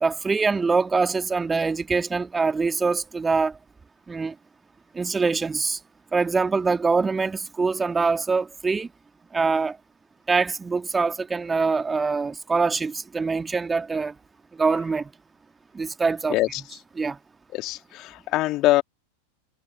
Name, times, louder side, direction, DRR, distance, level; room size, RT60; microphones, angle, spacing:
voice 1, 0.0-3.6 4.1-4.3 4.9-5.8 6.1-8.9 9.3-9.8 10.3-14.1 14.6-15.1 15.7-16.4 17.0-17.2, right 4 dB, 15° right, 1.9 m, -24 dB
voice 2, 17.5-18.8, left 18 dB, 40° left, 2.5 m, -23 dB
figure-of-eight pair, 90°, 0 cm